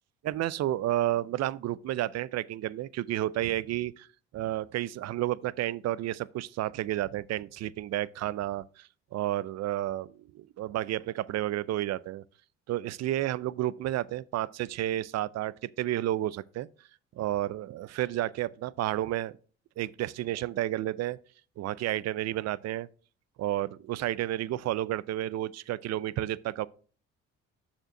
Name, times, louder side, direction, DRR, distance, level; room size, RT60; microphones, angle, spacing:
voice 1, 0.2-3.9 4.3-12.2 12.7-16.7 17.2-19.4 19.8-21.2 21.6-22.9 23.4-26.7, right 14 dB, 55° right, 0.5 m, -31 dB
6.6 x 4.4 x 5.8 m
hypercardioid pair, 55°, 32 cm